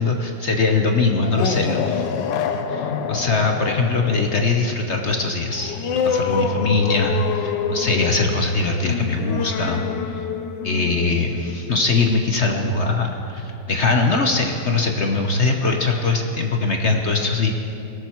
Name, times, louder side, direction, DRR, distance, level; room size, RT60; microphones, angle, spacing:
voice 1, 0.0-2.1 3.1-5.8 6.0-9.8 10.1-10.2 10.6-17.5, left 3 dB, 45° left, 3 dB, 1.0 m, -21 dB
sound 1, 1.1-12.3, left 7 dB, 70° left, 1.4 m, -27 dB
20.0 x 13.0 x 4.5 m, 2.7 s
omnidirectional pair, 2.1 m